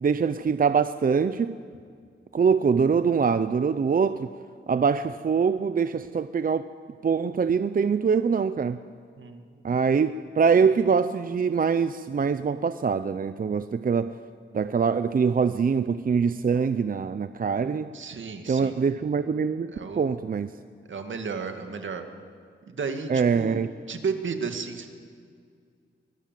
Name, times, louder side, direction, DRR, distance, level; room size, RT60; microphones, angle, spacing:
voice 1, 0.0-1.6 2.3-4.3 4.7-6.7 7.0-8.8 9.6-14.2 14.5-17.9 18.5-20.5 23.1-23.7, right 6 dB, 45° right, 12 dB, 0.6 m, -24 dB
voice 2, 17.9-18.8 19.7-20.2 20.9-22.1 22.7-23.6 23.9-24.9, right 5 dB, 75° right, 6 dB, 2.2 m, -33 dB
24.0 x 20.5 x 7.6 m, 2.1 s
wide cardioid pair, 130°, 20 cm